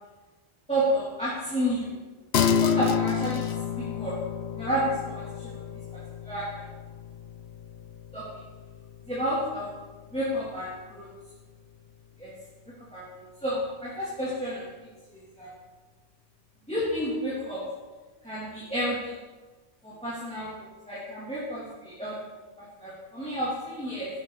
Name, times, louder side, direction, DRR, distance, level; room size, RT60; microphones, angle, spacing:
voice 1, 0.7-1.9 2.4-3.4 3.8-4.2 4.5-5.6 5.9-6.7 8.1-8.3 9.1-9.7 10.1-11.1 12.2-12.3 12.8-14.7 15.1-15.5 16.7-17.6 18.2-19.1 19.8-22.2 22.6-24.1, equal, 5° left, -9 dB, 3.2 m, -31 dB
sound 1, 2.3-12.1, left 7 dB, 80° left, 1.0 m, -31 dB
16.5 x 11.5 x 4.2 m, 1.3 s
omnidirectional pair, 1.1 m